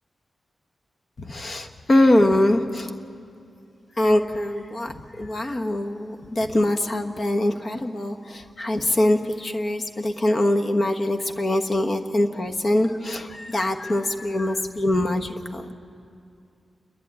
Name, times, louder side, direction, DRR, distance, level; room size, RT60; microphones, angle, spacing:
voice 1, 1.2-2.9 4.0-15.7, left 1 dB, 40° left, 5 dB, 1.2 m, -23 dB
29.5 x 11.0 x 9.4 m, 2.5 s
wide cardioid pair, 120°, 0 cm